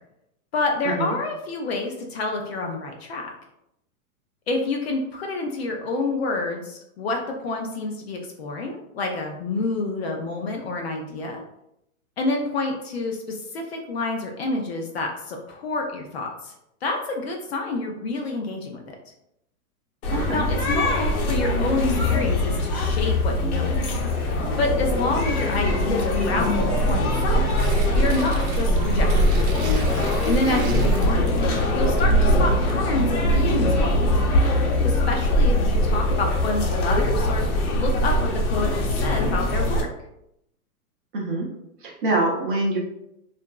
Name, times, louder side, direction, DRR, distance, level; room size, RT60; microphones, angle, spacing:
voice 1, 0.5-3.3 4.5-7.2 7.4-11.4 12.2-16.5 16.8-19.0 20.3-24.0 24.6-27.5 27.9-29.3 30.2-31.2 31.7-34.3 34.8-37.4 37.7-38.1 38.5-39.9, left 3 dB, 45° left, 1 dB, 0.4 m, -28 dB
sound 1, 20.0-39.8, left 1 dB, 75° left, 0.9 m, -22 dB
voice 2, 20.1-20.4 30.5-30.9 41.1-41.5 41.8-42.8, right 2 dB, 40° right, -1 dB, 0.5 m, -25 dB
Tearing, 27.1-33.4, right 4 dB, 70° right, 0.7 m, -40 dB
2.8 x 2.5 x 2.2 m, 0.80 s
hypercardioid pair, 160°, 44 cm